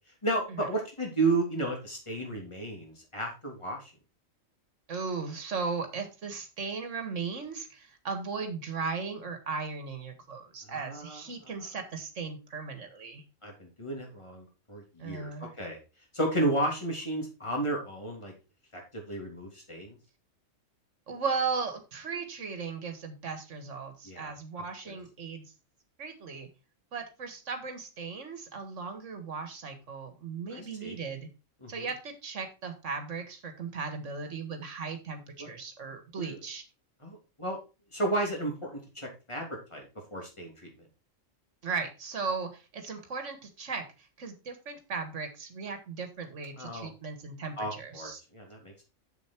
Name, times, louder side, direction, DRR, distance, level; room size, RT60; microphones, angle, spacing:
voice 1, 0.2-3.8 10.7-11.2 13.4-15.8 16.1-18.3 18.7-19.9 24.0-24.3 30.5-31.0 31.6-31.9 35.4-35.5 36.2-36.4 37.0-37.6 37.9-40.7 46.6-46.9 47.6-48.7, right 2 dB, 20° left, 0 dB, 3.1 m, -33 dB
voice 2, 4.9-13.2 15.0-15.5 21.1-25.5 26.0-26.5 26.9-31.3 31.7-36.6 41.6-48.2, right 5 dB, 65° right, 6 dB, 2.0 m, -37 dB
7.2 x 7.1 x 4.5 m, 0.30 s
omnidirectional pair, 1.3 m